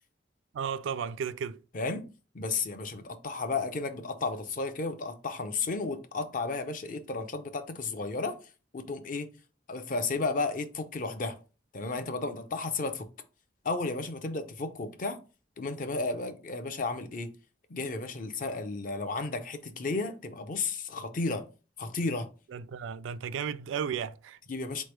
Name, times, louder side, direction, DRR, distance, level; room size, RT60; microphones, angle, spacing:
voice 1, 0.5-1.6 22.5-24.4, right 7 dB, 90° right, 0.3 m, -34 dB
voice 2, 1.7-2.1 2.3-8.4 8.7-9.3 9.7-11.4 11.7-13.1 13.6-15.2 15.6-17.3 17.7-21.5 21.8-22.3 24.5-24.8, left 3 dB, 45° left, 0.6 m, -33 dB
4.2 x 3.2 x 3.2 m
head